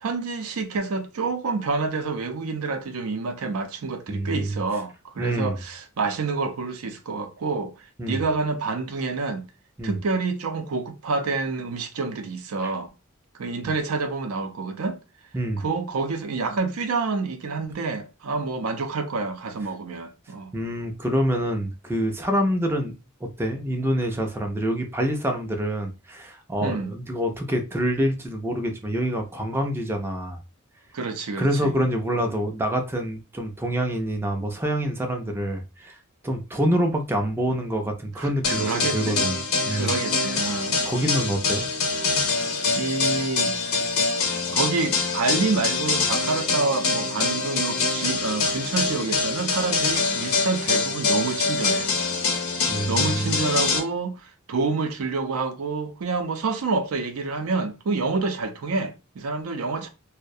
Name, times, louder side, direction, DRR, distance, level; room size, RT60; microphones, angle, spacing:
voice 1, 0.0-7.7 8.1-9.4 9.8-12.9 13.3-15.0 15.6-20.5 26.6-26.9 30.9-31.7 38.2-39.4 39.7-40.8 42.4-42.5 42.8-43.6 44.5-51.9 52.9-59.9, right 4 dB, 75° right, 0.5 m, -28 dB
voice 2, 4.1-4.6 5.2-5.6 8.0-8.2 9.8-10.0 12.6-12.7 15.3-15.6 20.5-23.0 23.2-30.4 31.4-36.0 36.2-39.4 39.7-39.9 40.2-40.4 40.8-41.7 52.7-53.4, equal, 10° right, 0.3 m, -26 dB
sound 1, 38.4-53.8, left 4 dB, 85° left, 0.7 m, -25 dB
2.3 x 2.1 x 2.6 m
head